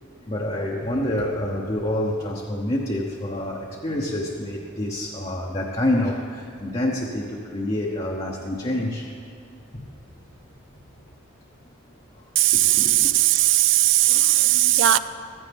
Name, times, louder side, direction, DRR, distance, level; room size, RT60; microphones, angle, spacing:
voice 1, 0.3-9.1 12.5-13.1, left 1 dB, 30° left, -2 dB, 0.9 m, -27 dB
voice 2, 12.4-15.0, right 14 dB, 65° right, 13 dB, 0.5 m, -18 dB
15.5 x 14.5 x 3.5 m, 2.6 s
head